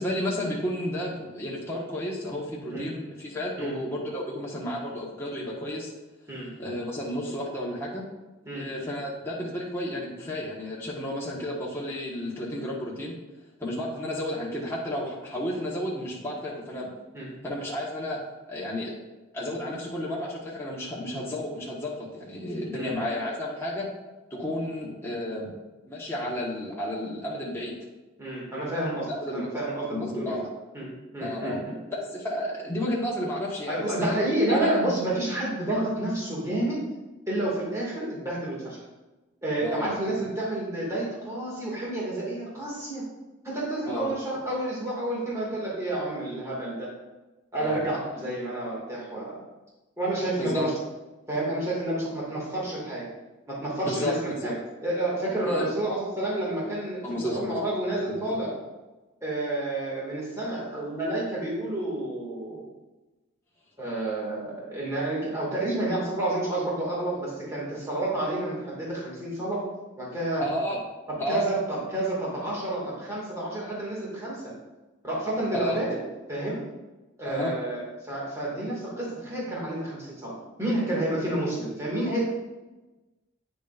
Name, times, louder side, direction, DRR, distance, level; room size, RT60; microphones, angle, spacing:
voice 1, 0.0-5.9 6.6-8.0 8.5-13.1 13.6-16.9 17.4-18.2 18.5-18.9 19.3-23.9 24.3-25.5 25.9-27.7 29.1-29.6 29.9-30.5 31.2-31.6 31.9-34.2 34.5-34.7 39.6-39.9 43.8-44.1 47.6-47.8 50.4-50.7 53.8-54.1 54.4-54.5 55.4-55.7 57.0-57.6 57.9-58.4 70.4-70.8 71.2-71.5 75.5-75.8 77.2-77.5, left 1 dB, 10° left, -6 dB, 1.5 m, -32 dB
voice 2, 28.2-30.4 30.7-31.7 33.7-36.8 37.3-38.8 39.4-43.0 43.4-46.9 47.5-49.4 50.0-50.7 51.3-53.1 53.5-54.5 54.8-58.6 59.2-62.6 63.8-69.6 70.0-70.4 71.1-74.4 75.0-76.0 76.3-76.6 77.2-82.3, right 1 dB, 15° right, -6 dB, 2.3 m, -30 dB
9.2 x 6.7 x 2.6 m, 1.1 s
head